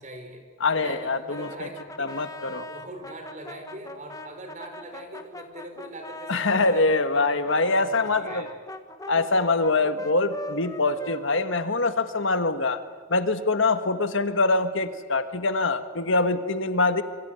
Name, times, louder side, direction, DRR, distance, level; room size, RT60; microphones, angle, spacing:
voice 1, 0.0-8.5, right 1 dB, 35° right, 5 dB, 5.0 m, -42 dB
voice 2, 0.6-1.7 2.0-2.7 6.3-8.4 9.1-12.8 13.1-17.0, left 3 dB, 60° left, 9 dB, 1.7 m, -24 dB
Brass instrument, 1.3-6.9 7.4-12.2, left 1 dB, 15° left, 1.6 m, -41 dB
27.0 x 24.5 x 9.0 m, 1.4 s
head